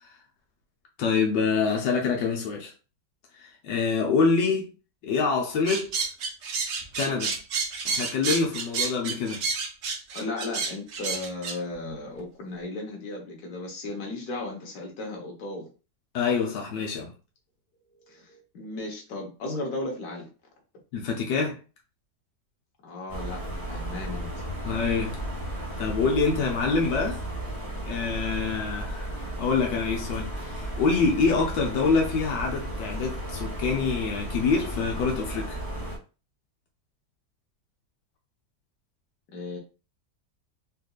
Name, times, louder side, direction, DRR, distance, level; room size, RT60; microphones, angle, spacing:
voice 1, 1.0-2.7 3.4-4.7 5.0-6.1 7.0-7.3 7.8-9.4 16.1-17.1 20.9-21.6 24.6-25.2 25.8-27.3 27.9-35.6, left 4 dB, 85° left, 1.4 m, -26 dB
sound 1, 5.7-11.6, right 5 dB, 65° right, 0.7 m, -30 dB
voice 2, 10.1-15.7 18.0-20.3 22.8-23.4 23.7-24.4 39.3-39.6, left 2 dB, 65° left, 1.5 m, -35 dB
sound 2, 23.1-36.0, right 1 dB, 15° left, 0.8 m, -34 dB
4.2 x 2.6 x 2.3 m
omnidirectional pair, 1.9 m